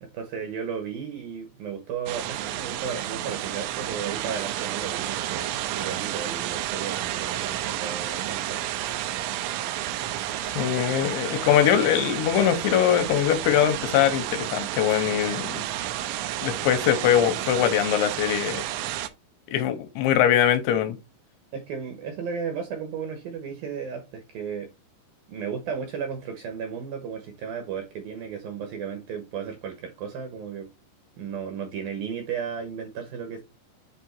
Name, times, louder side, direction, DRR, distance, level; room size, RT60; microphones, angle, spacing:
voice 1, 0.0-8.6 21.5-24.7 25.3-30.7 31.2-33.4, right 7 dB, 70° right, 2.2 m, -34 dB
sound 1, 2.1-19.1, right 12 dB, 85° right, 3.1 m, -31 dB
voice 2, 10.5-15.6 16.4-18.6 19.5-21.0, left 10 dB, 85° left, 3.0 m, -22 dB
7.8 x 3.7 x 4.4 m
omnidirectional pair, 5.4 m